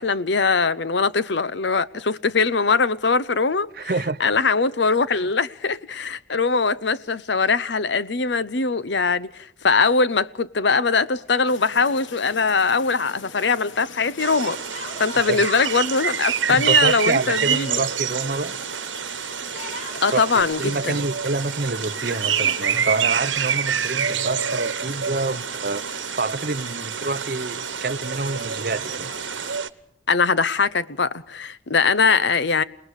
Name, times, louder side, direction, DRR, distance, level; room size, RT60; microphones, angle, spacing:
voice 1, 0.0-3.9 4.2-14.6 15.0-17.8 20.0-21.0 30.1-32.6, left 4 dB, 70° left, 0.8 m, -21 dB
voice 2, 3.8-4.2 15.1-15.5 16.5-18.6 20.1-29.1, right 3 dB, 50° right, 0.8 m, -27 dB
Yell, 11.1-12.0 12.3-12.4 14.4-15.8 17.1-18.5 19.4-20.4, left 2 dB, 40° left, 3.0 m, -38 dB
sound 1, 11.5-29.6, left 4 dB, 90° left, 1.4 m, -42 dB
sound 2, 14.2-29.7, right 8 dB, 90° right, 1.2 m, -27 dB
29.0 x 19.5 x 4.9 m
head